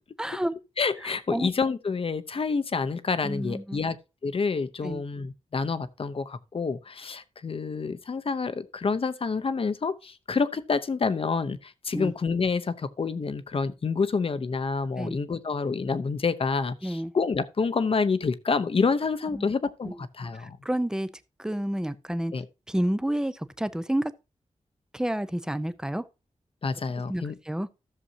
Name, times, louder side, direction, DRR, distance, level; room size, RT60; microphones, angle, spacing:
voice 1, 0.2-0.5 1.0-1.5 3.2-3.8 4.8-5.0 11.9-12.1 15.0-15.2 16.8-17.1 19.3-19.5 19.8-20.0 20.3-21.1 21.4-22.3 22.7-24.1 24.9-26.0 27.1-27.7, right 1 dB, 5° right, 0.6 m, -30 dB
voice 2, 0.8-4.0 4.2-20.6 22.3-22.5 26.6-27.3, left 4 dB, 50° left, 0.8 m, -28 dB
14.0 x 6.9 x 2.8 m
wide cardioid pair, 125°, 12 cm